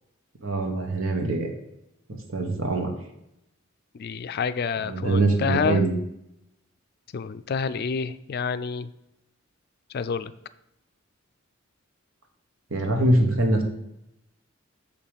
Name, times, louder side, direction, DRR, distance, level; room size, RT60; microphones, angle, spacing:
voice 1, 0.4-1.5 2.3-2.9 4.8-5.9 12.7-13.6, right 2 dB, 80° right, 3 dB, 1.5 m, -23 dB
voice 2, 4.0-5.8 7.1-8.9 9.9-10.3, left 5 dB, 50° left, 13 dB, 0.4 m, -28 dB
6.9 x 5.4 x 5.1 m, 0.82 s
head